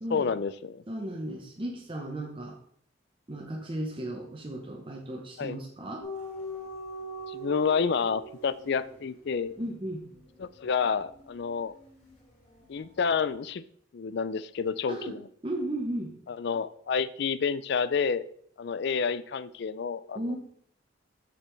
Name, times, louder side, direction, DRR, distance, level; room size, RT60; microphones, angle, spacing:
voice 1, 0.1-0.8 5.4-5.6 7.3-9.5 10.4-11.7 12.7-13.6 13.9-15.3 16.3-18.3 18.6-20.2, left 6 dB, 60° left, 16 dB, 0.4 m, -29 dB
voice 2, 0.9-2.6 3.3-6.0 9.6-10.0 14.9-15.2 15.4-16.1 20.1-20.4, right 1 dB, 25° right, 0 dB, 0.9 m, -35 dB
sound 1, 6.0-12.8 13.1-13.3, equal, 30° left, 3.0 m, -43 dB
7.5 x 6.8 x 3.3 m, 0.63 s
head